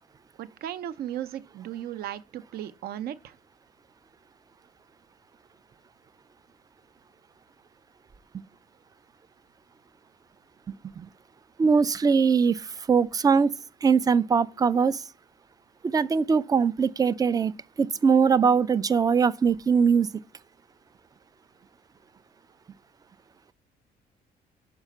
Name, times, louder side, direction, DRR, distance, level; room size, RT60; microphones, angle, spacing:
voice 1, 0.4-3.4, right 11 dB, 65° right, 0.6 m, -36 dB
voice 2, 10.7-11.1 11.6-13.5 13.8-15.0 15.8-17.5 17.8-20.1, right 6 dB, 20° right, 0.3 m, -22 dB
5.4 x 4.9 x 5.9 m
cardioid pair, 110°, 17 cm